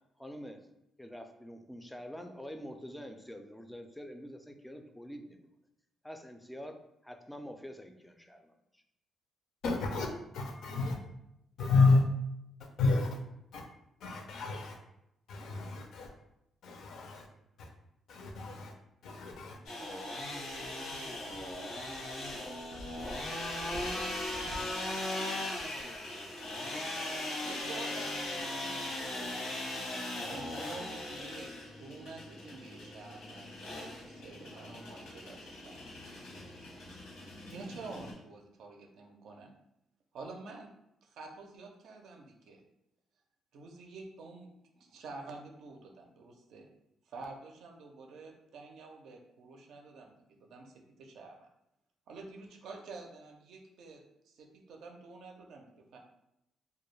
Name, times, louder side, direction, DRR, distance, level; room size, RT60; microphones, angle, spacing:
voice 1, 0.2-0.6 1.0-5.5 6.0-8.8, equal, 5° left, 0.3 m, -46 dB
voice 2, 9.6-11.0 11.6-12.0 12.8-13.2 13.5-13.6 14.0-14.8 15.3-16.1 16.6-17.2 17.6-17.7 18.1-18.7 19.0-19.6, left 3 dB, 70° left, 0.4 m, -30 dB
sound 1, 19.6-38.1, left 1 dB, 90° left, 0.9 m, -39 dB
voice 3, 26.9-31.5 31.8-35.9 37.0-37.1 37.5-39.5 40.1-40.7 41.0-42.6 43.5-44.5 44.7-46.7 47.1-51.5 52.1-56.0, right 3 dB, 75° right, 0.4 m, -49 dB
2.2 x 2.1 x 3.1 m
cardioid pair, 90°, 0 cm